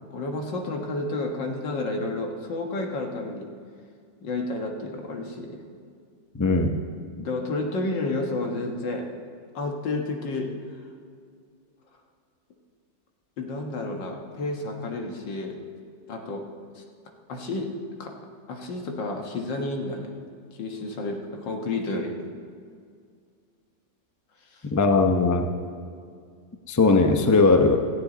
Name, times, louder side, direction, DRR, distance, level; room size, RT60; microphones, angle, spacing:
voice 1, 0.1-3.5 4.2-5.6 7.2-9.0 9.5-10.5 13.4-15.5 16.1-16.4 16.8-16.9 17.3-17.7 18.0-18.1 18.5-20.1 20.5-22.2 24.5-24.6, left 2 dB, 85° left, 2 dB, 2.2 m, -30 dB
voice 2, 6.4-6.8 24.6-25.5 26.7-27.8, left 3 dB, 25° left, 5 dB, 0.4 m, -19 dB
17.0 x 14.5 x 4.0 m, 2.2 s
omnidirectional pair, 1.9 m